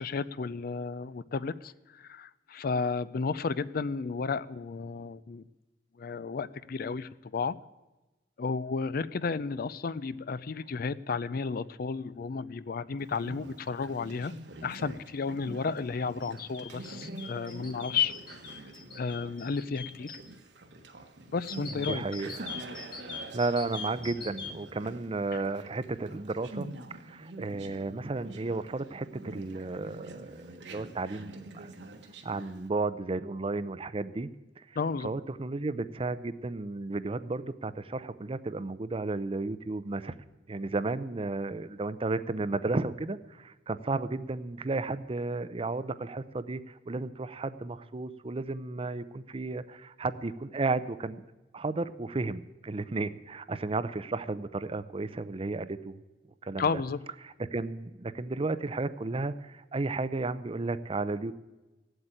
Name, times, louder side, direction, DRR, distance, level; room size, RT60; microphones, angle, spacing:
voice 1, 0.0-5.4 6.0-7.6 8.4-14.4 14.6-18.1 18.5-18.6 19.0-20.2 21.3-22.0 25.3-25.4 34.8-35.1 56.6-57.0, left 5 dB, 55° left, 17 dB, 0.4 m, -33 dB
Conversation, 13.0-32.7, right 2 dB, 70° right, 1.3 m, -46 dB
sound 1, 16.2-20.2 21.5-24.5, left 5 dB, 25° left, 1.7 m, -42 dB
voice 2, 21.7-22.6 23.0-26.7 27.0-31.7 32.2-34.3 34.6-34.8 35.0-40.1 40.5-51.2 51.5-56.0 56.4-56.8 57.2-61.3, right 3 dB, 30° right, 14 dB, 0.6 m, -33 dB
16.0 x 8.1 x 8.9 m, 1.1 s
head